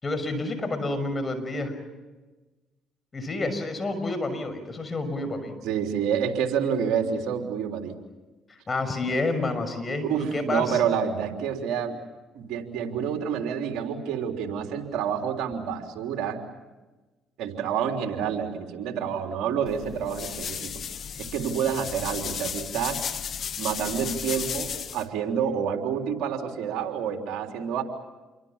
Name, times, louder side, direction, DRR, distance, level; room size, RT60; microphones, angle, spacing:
voice 1, 0.0-1.7 3.1-5.5 8.7-10.8, left 2 dB, 30° left, 9 dB, 6.1 m, -29 dB
voice 2, 5.6-8.0 10.0-12.0 12.3-16.4 17.4-20.7 21.2-23.0 23.6-27.8, right 7 dB, 75° right, 3 dB, 3.6 m, -28 dB
sound 1, 19.7-25.0, left 7 dB, 55° left, 1.7 m, -34 dB
28.5 x 23.5 x 7.4 m, 1.2 s
supercardioid pair, 65°, 0 cm